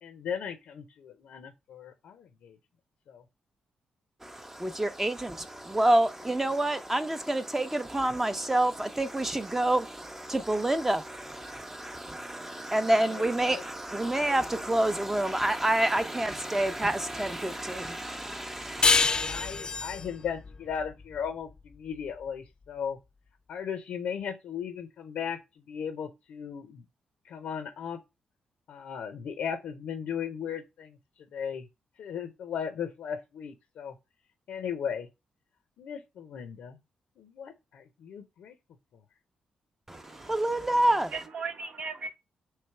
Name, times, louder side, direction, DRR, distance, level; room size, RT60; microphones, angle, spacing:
voice 1, 0.0-2.6 3.1-3.2 13.0-13.6 14.2-14.5 19.1-23.0 23.5-26.8 27.2-28.0 28.7-31.7 32.0-33.9 34.5-35.1 35.8-36.8 37.2-38.6, left 7 dB, 80° left, 0.6 m, -37 dB
voice 2, 4.2-19.1 39.9-41.2, right 1 dB, 15° right, 0.6 m, -28 dB
sound 1, 18.8-22.0, left 4 dB, 35° left, 0.3 m, -27 dB
voice 3, 39.9-40.3 41.1-42.1, right 4 dB, 65° right, 0.9 m, -37 dB
3.2 x 3.2 x 4.3 m
cardioid pair, 70°, 2 cm